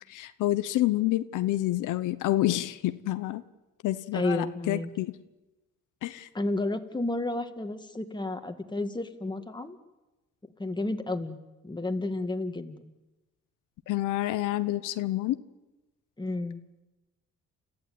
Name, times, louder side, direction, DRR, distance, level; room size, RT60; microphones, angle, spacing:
voice 1, 0.1-3.4 3.8-5.1 6.0-6.3 13.9-15.4, left 15 dB, 90° left, 12 dB, 1.0 m, -28 dB
voice 2, 4.1-4.9 6.3-9.8 10.6-11.4 11.6-12.9 16.2-16.6, left 2 dB, 15° left, 7 dB, 2.0 m, -31 dB
30.0 x 14.5 x 9.5 m, 1.1 s
cardioid pair, 90°, 30 cm